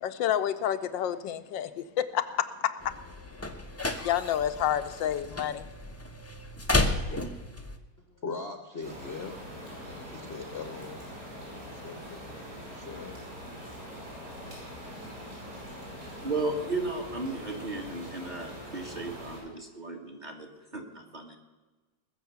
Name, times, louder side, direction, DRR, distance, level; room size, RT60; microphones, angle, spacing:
voice 1, 0.0-3.0 4.0-5.7, left 10 dB, 80° left, 10 dB, 1.3 m, -29 dB
sound 1, 2.8-7.8, left 2 dB, 20° left, 0.4 m, -32 dB
voice 2, 8.1-9.4 9.8-11.1 11.6-12.3 12.7-13.4, left 4 dB, 45° left, 6 dB, 0.9 m, -41 dB
sound 2, 8.8-19.4, equal, 45° right, 6.7 m, -43 dB
voice 3, 16.2-21.4, right 3 dB, 25° right, 4 dB, 1.7 m, -35 dB
20.0 x 7.1 x 7.0 m, 1.2 s
omnidirectional pair, 2.1 m